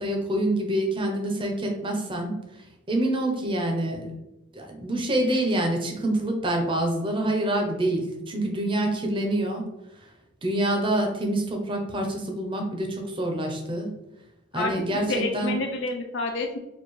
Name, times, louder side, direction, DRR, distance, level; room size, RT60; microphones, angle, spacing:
voice 1, 0.0-2.3 2.9-4.1 4.5-9.7 10.4-13.9 14.5-15.6, right 1 dB, 25° right, 2 dB, 0.6 m, -26 dB
voice 2, 14.5-16.6, left 2 dB, 60° left, 3 dB, 0.4 m, -29 dB
4.4 x 2.4 x 3.0 m, 0.95 s
head